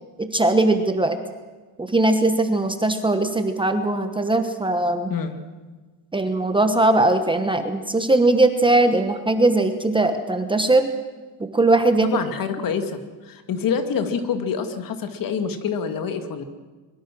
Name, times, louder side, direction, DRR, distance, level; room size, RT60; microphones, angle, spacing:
voice 1, 0.2-1.2 1.8-5.1 6.1-10.9 11.5-12.1, right 2 dB, 10° right, 7 dB, 1.1 m, -20 dB
voice 2, 12.1-16.4, left 6 dB, 50° left, 8 dB, 2.2 m, -26 dB
23.0 x 22.0 x 6.2 m, 1.3 s
cardioid pair, 155°, 44 cm